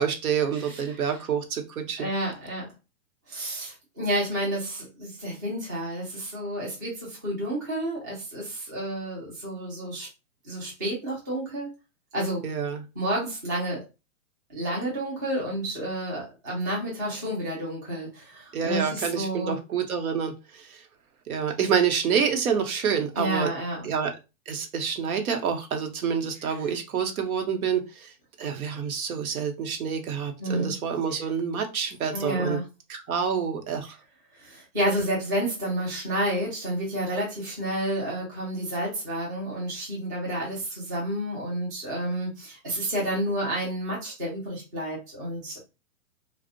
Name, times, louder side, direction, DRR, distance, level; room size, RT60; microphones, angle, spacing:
voice 1, 0.0-2.1 12.4-12.8 18.5-20.8 21.3-23.5 23.8-24.1 24.5-28.1 28.4-32.6 32.9-34.0, right 7 dB, 90° right, 5 dB, 0.8 m, -27 dB
voice 2, 0.5-1.2 2.0-2.7 3.3-10.1 10.4-11.7 12.1-12.5 13.0-13.8 14.5-19.6 23.1-23.9 26.4-26.7 30.4-30.7 31.1-31.2 32.1-32.6 34.4-45.6, right 1 dB, 15° right, -5 dB, 0.4 m, -30 dB
2.5 x 2.0 x 2.5 m, 0.27 s
hypercardioid pair, 155°, 41 cm